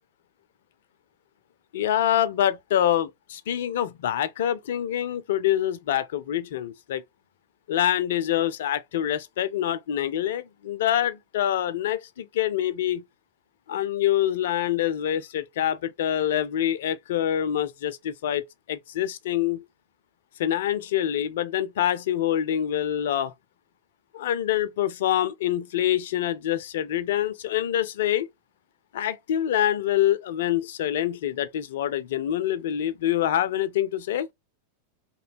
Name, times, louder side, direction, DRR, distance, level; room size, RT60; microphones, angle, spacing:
voice 1, 1.7-7.0 7.7-13.0 13.7-19.7 20.4-23.3 24.1-28.3 28.9-34.3, left 11 dB, 55° left, 0.4 m, -26 dB
3.0 x 2.7 x 3.0 m
figure-of-eight pair, 90°, 0 cm